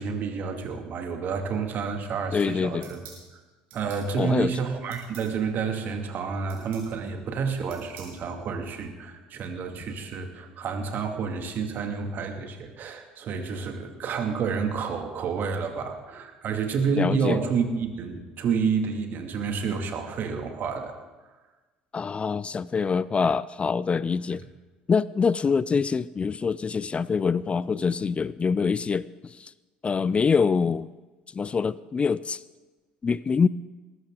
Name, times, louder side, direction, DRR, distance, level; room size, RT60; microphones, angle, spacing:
voice 1, 0.0-3.0 3.3-3.4 3.7-21.0, right 5 dB, 50° right, 5 dB, 2.4 m, -29 dB
voice 2, 2.3-2.9 4.2-4.5 17.0-17.4 21.9-24.4 24.9-29.5 29.8-30.9 31.3-32.4 33.0-33.5, left 5 dB, 30° left, 19 dB, 0.4 m, -25 dB
sound 1, 2.8-3.2 3.7-4.1 4.9-5.3 6.5-6.9 7.7-8.2, right 6 dB, 70° right, 5.9 m, -47 dB
20.5 x 14.0 x 3.9 m, 1.2 s
hypercardioid pair, 65°, 4 cm